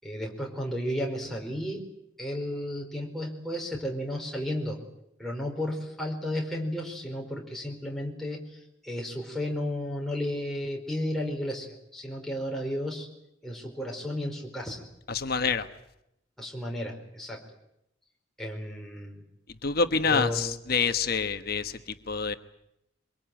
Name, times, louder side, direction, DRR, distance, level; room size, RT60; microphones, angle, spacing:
voice 1, 0.0-1.8 2.2-4.8 5.2-11.7 11.9-13.1 13.4-14.8 16.4-17.4 18.4-19.2 20.1-20.4, left 1 dB, ahead, -1 dB, 4.7 m, -33 dB
voice 2, 15.1-15.7 19.6-22.3, left 5 dB, 50° left, 8 dB, 1.3 m, -27 dB
24.0 x 22.5 x 9.1 m, 0.82 s
head